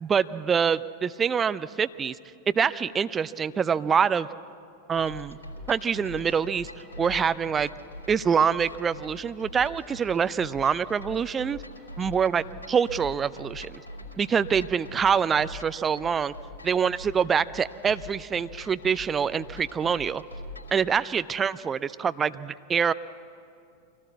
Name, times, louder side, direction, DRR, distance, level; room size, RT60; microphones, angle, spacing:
voice 1, 0.0-2.1 2.5-4.3 4.9-5.4 5.7-6.7 7.0-7.7 8.1-11.6 12.0-13.8 14.2-16.3 16.6-20.2 20.7-22.9, right 7 dB, 20° right, 14 dB, 0.5 m, -25 dB
sound 1, 4.9-20.8, left 1 dB, 75° left, 3.2 m, -43 dB
24.0 x 17.5 x 8.3 m, 2.5 s
figure-of-eight pair, 90°, 0 cm